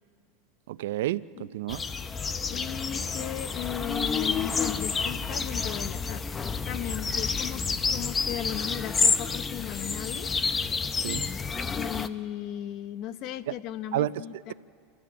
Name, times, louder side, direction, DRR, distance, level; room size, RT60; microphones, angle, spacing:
voice 1, 0.7-1.8 11.0-11.2 13.5-13.6 13.9-14.2, right 14 dB, 80° right, 17 dB, 0.5 m, -30 dB
sound 1, 1.7-12.1, left 5 dB, 20° left, 0.6 m, -29 dB
voice 2, 2.5-6.2 6.7-7.6 7.9-10.3 11.7-14.5, left 11 dB, 50° left, 14 dB, 0.8 m, -36 dB
28.5 x 13.5 x 8.3 m, 2.3 s
supercardioid pair, 140°, 0 cm